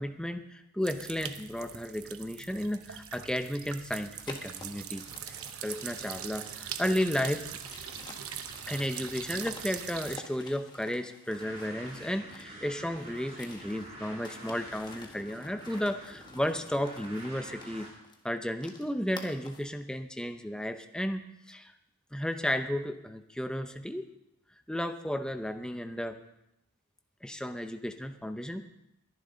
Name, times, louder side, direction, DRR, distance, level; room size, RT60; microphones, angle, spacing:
voice 1, 0.0-5.0 5.6-7.5 8.7-17.9 18.2-21.7 22.1-24.1 24.7-26.2 27.2-28.6, equal, 5° left, 7 dB, 0.7 m, -33 dB
sound 1, 0.8-10.2, right 9 dB, 75° right, 0.9 m, -42 dB
sound 2, 4.2-12.6 12.9-19.7, left 3 dB, 20° left, 1.6 m, -50 dB
sound 3, 11.3-17.9, right 1 dB, 30° right, 3.5 m, -47 dB
22.0 x 10.5 x 3.9 m, 0.83 s
head